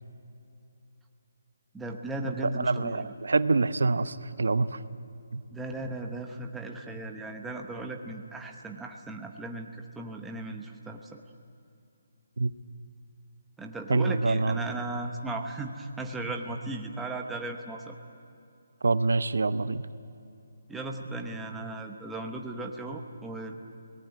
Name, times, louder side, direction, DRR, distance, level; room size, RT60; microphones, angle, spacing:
voice 1, 1.7-3.1 5.5-11.2 13.6-18.0 20.7-23.5, right 2 dB, 5° right, 1 dB, 0.9 m, -36 dB
voice 2, 2.6-4.7 5.3-5.4 12.4-12.5 13.9-14.6 18.8-19.8, right 3 dB, 80° right, 13 dB, 0.9 m, -26 dB
24.0 x 18.5 x 9.4 m, 2.7 s
hypercardioid pair, 175°, 0 cm